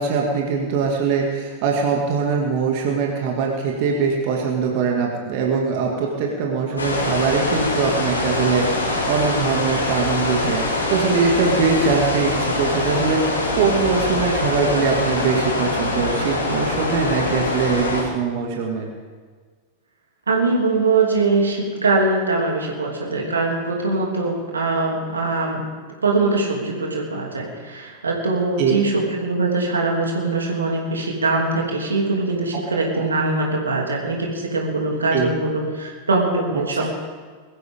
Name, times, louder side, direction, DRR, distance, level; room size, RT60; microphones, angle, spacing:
voice 1, 0.0-18.9 28.6-28.8 32.9-33.1 35.1-35.3 36.7-36.9, right 5 dB, 45° right, 0 dB, 2.4 m, -22 dB
sound 1, 6.8-18.0, left 2 dB, 75° left, 4.7 m, -23 dB
voice 2, 20.3-25.7 26.0-36.9, right 3 dB, 75° right, 0 dB, 3.0 m, -22 dB
21.5 x 14.5 x 3.8 m, 1.5 s
figure-of-eight pair, 90°, 0 cm